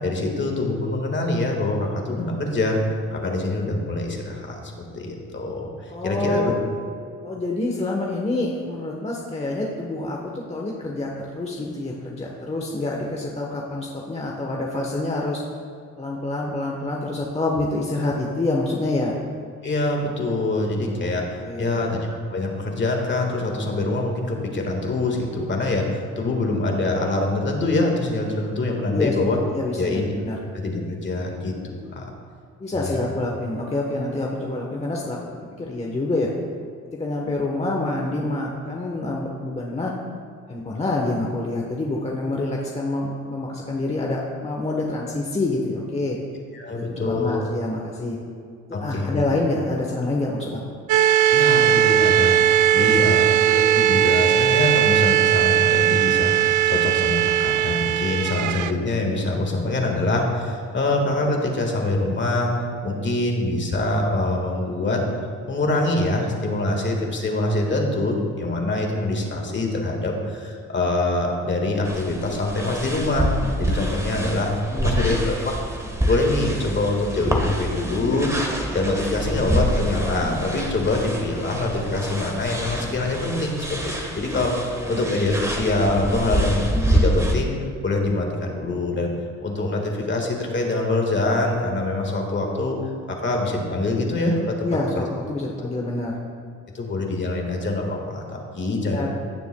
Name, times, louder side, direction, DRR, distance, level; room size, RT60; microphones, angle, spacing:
voice 1, 0.0-2.8 3.1-6.5 19.6-29.4 29.8-30.1 30.5-32.1 32.7-33.0 46.5-47.4 48.7-49.2 51.3-62.5 62.8-65.0 65.5-74.5 74.8-75.6 76.0-78.3 78.7-87.5 87.8-89.1 89.4-92.8 93.1-95.0 96.7-99.1, left 2 dB, 40° left, 1 dB, 1.7 m, -24 dB
voice 2, 5.9-6.5 7.2-15.4 16.0-19.2 21.4-21.9 28.9-30.4 32.6-35.2 35.6-36.3 37.0-39.9 40.5-46.2 47.0-48.2 48.7-50.7 52.7-53.3 74.7-75.2 84.7-85.0 94.6-96.2 98.9-99.1, left 2 dB, 20° left, -2 dB, 1.0 m, -27 dB
sound 1, 50.9-58.7, right 11 dB, 80° right, 0.4 m, -18 dB
sound 2, 71.9-87.3, equal, 10° right, 1.2 m, -26 dB
16.0 x 6.8 x 2.3 m, 2.3 s
cardioid pair, 90°, 30 cm